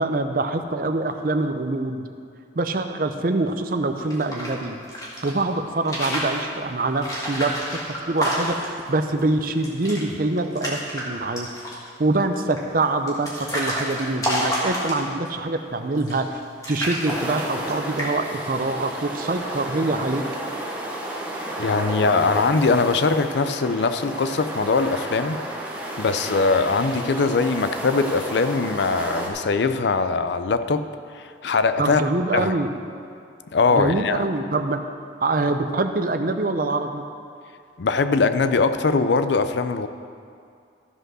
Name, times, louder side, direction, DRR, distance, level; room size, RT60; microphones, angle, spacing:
voice 1, 0.0-2.0 2.5-4.8 5.2-7.6 8.1-11.5 12.0-16.4 16.7-20.2 31.8-32.7 33.7-34.8 35.2-37.0, right 2 dB, 50° right, 7 dB, 0.6 m, -24 dB
sound 1, 4.0-5.3 5.7-6.4 7.0-8.8 9.2-9.3 9.5-10.0 10.4-11.0 11.4-11.9 12.6-15.3 15.9-16.4 16.6-17.7 18.0-18.4, equal, 20° left, 1.6 m, -29 dB
sound 2, 17.0-29.3, right 1 dB, 10° right, 1.1 m, -32 dB
voice 2, 21.6-25.4 26.0-30.9 31.1-32.0 32.3-32.5 33.5-34.2 37.8-39.9, left 4 dB, 70° left, 11 dB, 0.4 m, -21 dB
13.5 x 5.3 x 6.2 m, 2.4 s
head